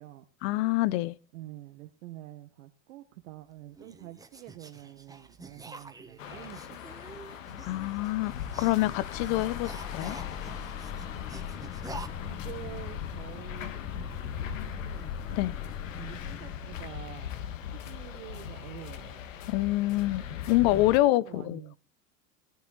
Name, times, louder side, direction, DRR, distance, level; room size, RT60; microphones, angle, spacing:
voice 1, 0.4-1.1 7.6-10.2 15.3-15.5 19.5-21.6, left 17 dB, 55° left, 0.9 m, -26 dB
voice 2, 1.3-6.8 7.1-7.2 9.2-9.5 11.7-15.4 16.0-17.4 17.6-19.4 20.6-21.8, right 14 dB, 70° right, 1.4 m, -47 dB
sound 1, 3.3-12.1, right 3 dB, 10° right, 1.6 m, -48 dB
sound 2, 6.2-21.0, left 9 dB, 85° left, 1.7 m, -40 dB
sound 3, 8.5-17.7, left 8 dB, 35° left, 1.4 m, -41 dB
17.0 x 9.5 x 4.1 m
hypercardioid pair, 100°, 38 cm